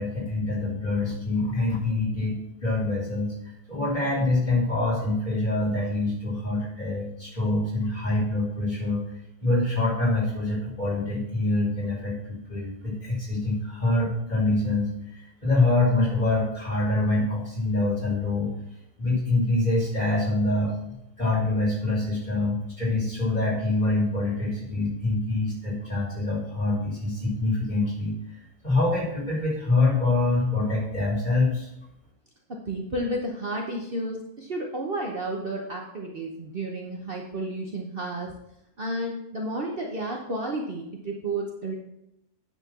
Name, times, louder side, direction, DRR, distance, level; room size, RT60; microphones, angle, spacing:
voice 1, 0.0-9.0 9.4-18.5 19.0-20.7 21.2-31.7, left 2 dB, 30° left, -7 dB, 4.1 m, -25 dB
voice 2, 32.5-38.3 38.8-41.7, right 1 dB, 45° right, 0 dB, 1.1 m, -32 dB
9.6 x 4.5 x 6.0 m, 0.82 s
omnidirectional pair, 1.5 m